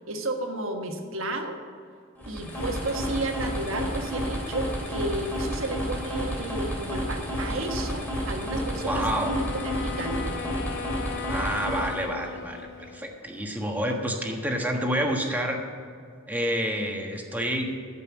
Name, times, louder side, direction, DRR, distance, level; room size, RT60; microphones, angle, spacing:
voice 1, 0.1-1.6 2.3-10.3, right 2 dB, 70° right, 3 dB, 1.4 m, -32 dB
sound 1, 2.2-12.1, equal, 10° left, 2.6 m, -31 dB
sound 2, 2.5-15.4, left 2 dB, 80° left, 2.3 m, -51 dB
voice 2, 8.8-9.3 11.3-15.6 16.3-17.7, equal, 10° right, 1 dB, 1.4 m, -28 dB
Wind instrument woodwind instrument, 9.0-13.1, left 6 dB, 55° left, 0.4 m, -37 dB
14.0 x 5.5 x 8.4 m, 2.3 s
head